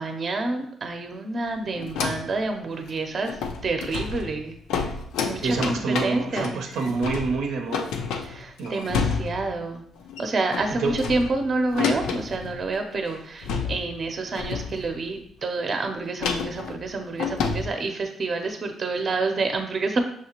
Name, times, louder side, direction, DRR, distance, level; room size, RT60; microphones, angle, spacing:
voice 1, 0.0-4.9 5.2-6.6 8.2-9.8 10.2-20.0, right 3 dB, 45° right, 5 dB, 0.7 m, -28 dB
sound 1, 1.8-2.4 2.8-2.9 3.2-9.6 10.0-10.2 10.5-12.7 13.1-13.2 13.4-14.1 14.3-15.0 16.2-17.7, left 5 dB, 90° left, 0.5 m, -30 dB
voice 2, 5.4-8.0 8.6-8.8 10.7-11.0, right 4 dB, 85° right, 3 dB, 0.6 m, -27 dB
6.3 x 2.8 x 2.9 m, 0.67 s
cardioid pair, 90°, 0 cm